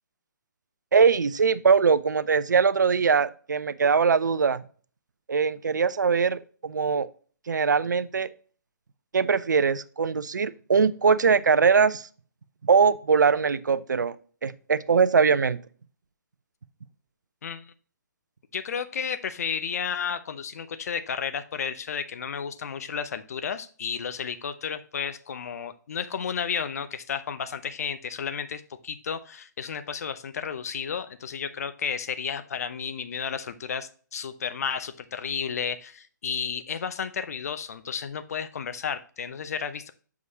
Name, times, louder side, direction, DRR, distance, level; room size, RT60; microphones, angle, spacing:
voice 1, 0.9-4.6 5.3-7.1 7.5-8.3 9.1-12.1 12.6-14.2 14.4-15.6, right 5 dB, 70° right, 0.5 m, -22 dB
voice 2, 17.4-17.7 18.5-39.9, left 7 dB, 55° left, 0.7 m, -32 dB
8.0 x 4.7 x 2.7 m
figure-of-eight pair, 130°, 10 cm